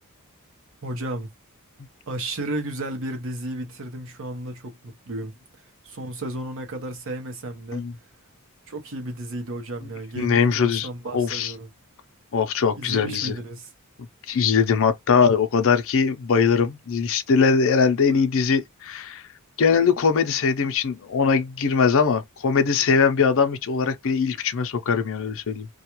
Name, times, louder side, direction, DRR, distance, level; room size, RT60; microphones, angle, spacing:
voice 1, 0.8-1.3 2.1-5.3 5.8-7.9 8.7-11.7 12.7-13.7, right 1 dB, 60° right, 0.8 m, -33 dB
voice 2, 10.2-11.5 12.3-13.3 14.3-19.2 19.6-25.7, left 5 dB, 65° left, 0.6 m, -21 dB
2.4 x 2.3 x 2.9 m
head